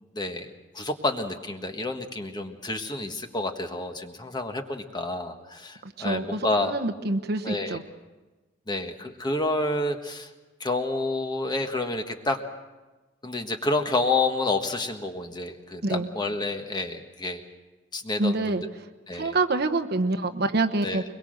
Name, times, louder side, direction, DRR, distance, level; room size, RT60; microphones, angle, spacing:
voice 1, 0.1-0.5 0.7-6.7 7.4-7.8 8.7-10.3 10.6-12.4 13.2-17.4 17.9-18.7 19.1-19.4 20.8-21.0, left 2 dB, 25° left, 5 dB, 1.5 m, -29 dB
voice 2, 6.0-7.8 15.8-16.1 18.2-18.6 19.1-21.0, right 2 dB, 60° right, 6 dB, 1.1 m, -26 dB
23.5 x 22.0 x 6.5 m, 1.2 s
head